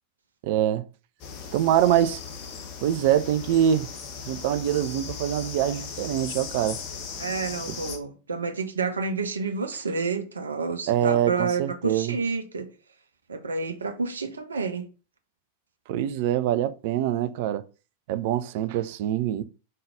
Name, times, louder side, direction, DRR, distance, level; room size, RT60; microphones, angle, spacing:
voice 1, 0.4-0.9 1.5-2.2 2.8-3.9 4.3-6.8 10.9-12.2 15.9-17.6 18.1-19.4, right 11 dB, 50° right, 0.5 m, -24 dB
sound 1, 1.2-8.0, left 6 dB, 40° left, 1.3 m, -38 dB
voice 2, 7.2-12.7 13.3-14.9, right 4 dB, 70° right, 1.0 m, -29 dB
5.4 x 3.9 x 4.9 m
figure-of-eight pair, 90°, 0 cm